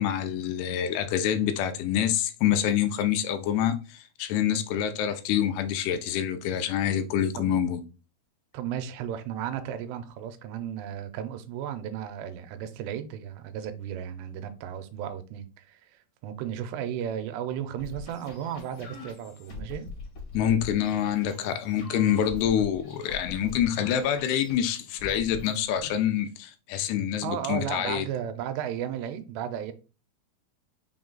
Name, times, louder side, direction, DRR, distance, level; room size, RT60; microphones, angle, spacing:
voice 1, 0.0-7.8 20.3-28.1, left 9 dB, 85° left, 2.5 m, -26 dB
voice 2, 8.5-19.9 27.2-29.7, right 9 dB, 85° right, 2.7 m, -34 dB
sound 1, 17.8-26.0, left 3 dB, 60° left, 1.2 m, -43 dB
6.2 x 2.3 x 3.7 m
omnidirectional pair, 4.8 m